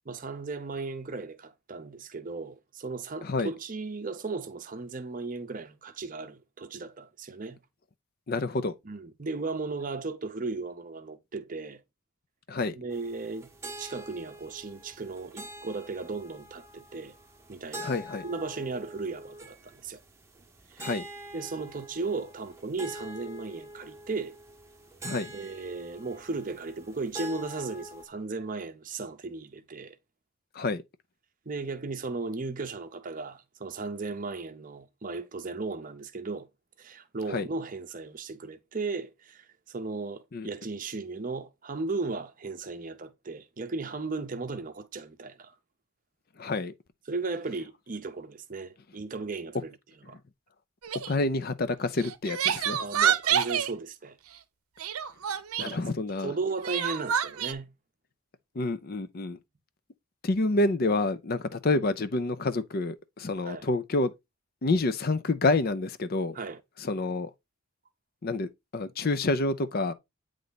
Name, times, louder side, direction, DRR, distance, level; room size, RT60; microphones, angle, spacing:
voice 1, 0.1-7.6 8.8-11.8 12.8-13.5 13.8-17.1 17.5-17.9 18.2-20.0 20.7-21.0 21.3-24.4 25.3-30.0 31.5-36.5 36.8-45.6 47.1-49.8 50.1-50.2 52.8-54.2 55.6-55.8 56.2-57.7 63.4-63.7 66.3-66.6, right 3 dB, 35° right, 0.7 m, -36 dB
voice 2, 8.3-8.7 12.5-12.8 17.8-18.2 20.8-21.1 25.0-25.3 30.6-30.8 37.3-37.5 40.3-40.5 46.4-46.7 51.1-52.8 55.6-56.3 58.6-59.4 60.2-64.1 64.6-66.4 66.8-67.3 68.2-69.9, left 2 dB, 40° left, 0.5 m, -28 dB
sound 1, 12.9-28.1, right 1 dB, 15° right, 0.9 m, -45 dB
Crying sobbing, 50.8-51.1 52.0-53.7 54.8-55.7 56.6-57.5, right 8 dB, 80° right, 0.7 m, -27 dB
9.2 x 3.2 x 4.0 m
head